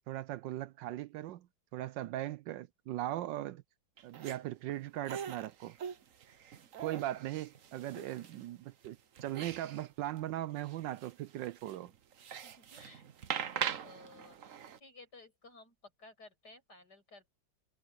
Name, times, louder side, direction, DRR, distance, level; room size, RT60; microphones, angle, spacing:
voice 1, 0.1-3.6 4.0-5.8 6.8-11.9, right 14 dB, 75° right, 1.2 m, -39 dB
sound 1, 4.0-4.4 5.1-8.5 8.8-9.9 10.2-10.3 10.6-14.8, right 8 dB, 50° right, 1.1 m, -42 dB
voice 2, 12.4-14.5 14.8-17.3, left 3 dB, 55° left, 8.8 m, -57 dB
omnidirectional pair, 2.1 m